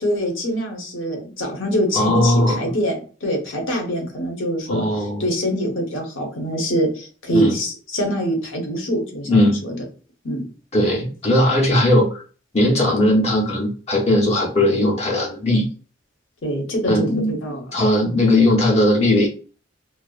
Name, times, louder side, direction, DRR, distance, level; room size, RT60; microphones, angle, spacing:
voice 1, 0.0-9.7 10.2-10.5 16.4-17.7, equal, 85° left, 2 dB, 0.9 m, -24 dB
voice 2, 1.9-2.6 4.7-5.2 7.3-7.5 9.3-9.6 10.7-12.2 12.5-15.7 16.9-17.3 17.7-19.3, left 1 dB, 35° left, -2 dB, 0.6 m, -18 dB
2.5 x 2.3 x 2.3 m, 0.38 s
head